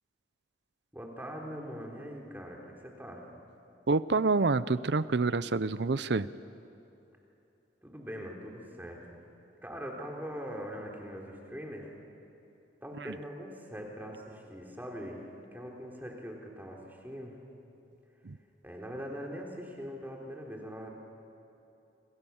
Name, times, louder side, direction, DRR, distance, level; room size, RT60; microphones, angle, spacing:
voice 1, 0.9-3.3 7.8-9.2 9.6-11.9 12.8-17.4 18.6-20.9, equal, 10° right, -1 dB, 3.6 m, -42 dB
voice 2, 3.9-6.3 13.0-13.1 18.2-18.4, right 3 dB, 70° right, 15 dB, 0.6 m, -27 dB
27.0 x 27.0 x 7.2 m, 2.9 s
head